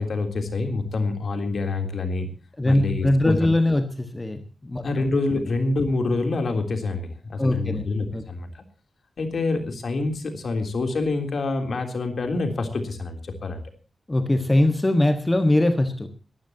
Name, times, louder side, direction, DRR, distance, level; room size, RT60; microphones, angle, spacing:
voice 1, 0.0-2.3 2.6-3.4 4.8-8.6 9.2-13.6, left 3 dB, 60° left, 5 dB, 3.4 m, -26 dB
voice 2, 2.6-4.8 7.4-8.2 14.1-16.1, left 1 dB, 15° left, 6 dB, 1.6 m, -21 dB
22.0 x 15.0 x 2.9 m, 0.36 s
wide cardioid pair, 140°, 0 cm